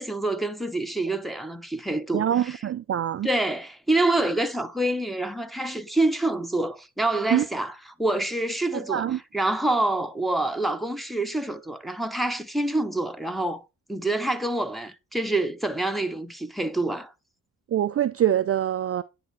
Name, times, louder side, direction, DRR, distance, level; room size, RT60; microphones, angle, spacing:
voice 1, 0.0-2.6 3.2-13.6 13.9-17.1, right 2 dB, ahead, 1.1 m, -27 dB
voice 2, 2.1-3.3 7.3-7.4 8.9-9.2 17.7-19.0, right 10 dB, 35° right, 0.5 m, -24 dB
9.8 x 3.6 x 4.2 m
hypercardioid pair, 45°, 44 cm